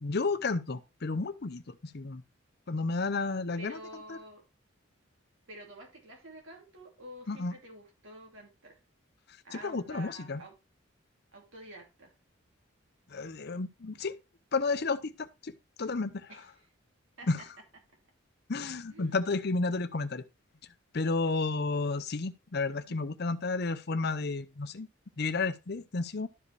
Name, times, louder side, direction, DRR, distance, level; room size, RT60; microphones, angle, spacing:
voice 1, 0.0-2.2 2.7-3.8 4.1-4.2 7.3-7.5 9.5-10.4 13.1-14.1 14.5-16.3 17.3-17.4 18.5-20.2 20.9-24.9 25.2-26.3, left 3 dB, 50° left, 0.7 m, -32 dB
voice 2, 3.6-4.4 5.5-8.8 9.4-10.5 11.3-12.1 16.3-16.4 17.2-17.3 18.9-19.2 22.7-23.0, right 1 dB, 70° right, 2.9 m, -49 dB
12.0 x 5.0 x 3.3 m
head